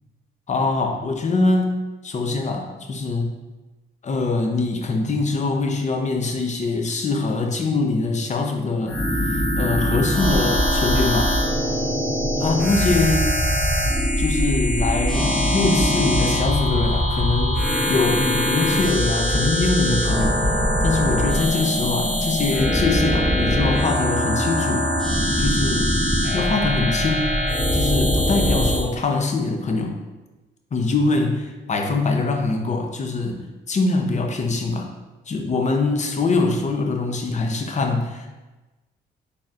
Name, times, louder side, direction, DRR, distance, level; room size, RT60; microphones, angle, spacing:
voice 1, 0.5-3.3 4.0-11.3 12.4-13.3 14.2-17.6 17.9-20.4 20.8-24.9 25.4-25.9 26.3-27.3 27.7-30.0 30.7-34.9 35.3-38.3, left 3 dB, 35° left, 3 dB, 0.6 m, -23 dB
sound 1, 8.9-28.8, equal, 5° left, 0.8 m, -22 dB
4.1 x 3.4 x 2.4 m, 1.1 s
cardioid pair, 90°, 20 cm